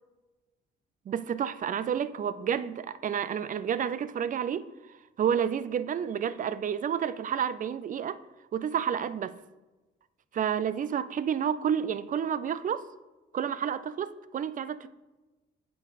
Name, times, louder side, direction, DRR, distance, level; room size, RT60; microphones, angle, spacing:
voice 1, 1.1-4.7 5.2-8.2 8.5-9.4 10.3-12.9 13.3-14.9, right 8 dB, 40° right, 0.4 m, -30 dB
8.0 x 4.6 x 4.1 m
cardioid pair, 90°, 20 cm